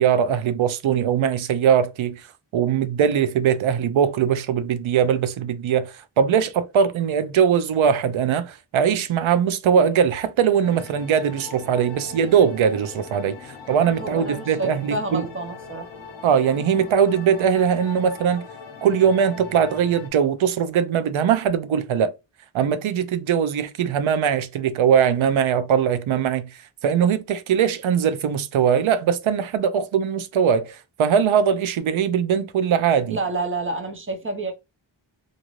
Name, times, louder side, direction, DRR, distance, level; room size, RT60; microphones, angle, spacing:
voice 1, 0.0-2.3 2.5-15.3 16.2-18.5 18.8-22.1 22.5-33.2, right 7 dB, 90° right, 0.6 m, -21 dB
sound 1, 10.6-20.1, left 5 dB, 70° left, 0.8 m, -40 dB
voice 2, 14.0-15.9 33.1-34.5, right 2 dB, 25° right, 0.7 m, -29 dB
2.6 x 2.5 x 3.0 m
wide cardioid pair, 125°, 46 cm